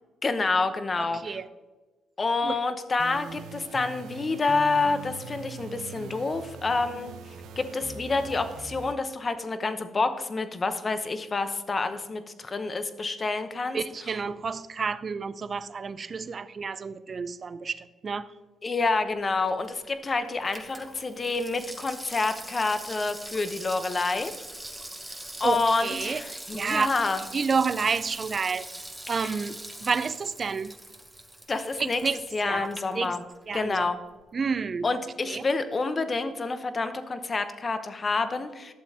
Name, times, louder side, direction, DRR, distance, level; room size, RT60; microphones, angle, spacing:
voice 1, 0.2-1.4 2.2-13.8 18.6-24.3 25.4-27.2 29.1-29.3 31.5-32.0 32.3-33.2 33.5-34.0 34.8-38.7, left 3 dB, 30° left, 9 dB, 0.9 m, -28 dB
voice 2, 1.1-1.5 2.4-2.6 13.7-18.3 25.4-26.2 26.5-26.9 27.3-28.7 29.1-30.8 31.8-32.2 32.4-32.7 32.9-33.1 33.5-33.9 34.3-35.0 35.3-35.4, right 5 dB, 40° right, 15 dB, 0.5 m, -30 dB
sound 1, 3.0-8.9, right 6 dB, 85° right, 0.6 m, -42 dB
Water tap faucet / Sink (filling or washing), 19.3-33.6 33.9-34.0, right 1 dB, 10° right, 1.0 m, -42 dB
12.0 x 7.0 x 2.8 m, 1.3 s
cardioid pair, 90°, 0 cm